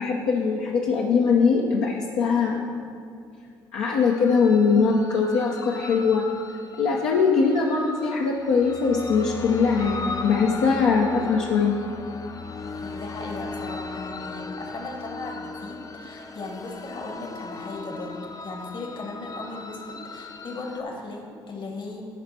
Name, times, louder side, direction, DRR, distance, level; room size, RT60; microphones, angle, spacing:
voice 1, 0.0-2.6 3.7-6.2 6.8-11.7, left 5 dB, 80° left, -2 dB, 0.7 m, -21 dB
sound 1, 4.0-20.8, left 4 dB, 35° left, 0.5 m, -37 dB
voice 2, 12.8-22.0, left 3 dB, 50° left, 2 dB, 1.3 m, -37 dB
10.5 x 4.3 x 4.2 m, 2.3 s
supercardioid pair, 55°, 10 cm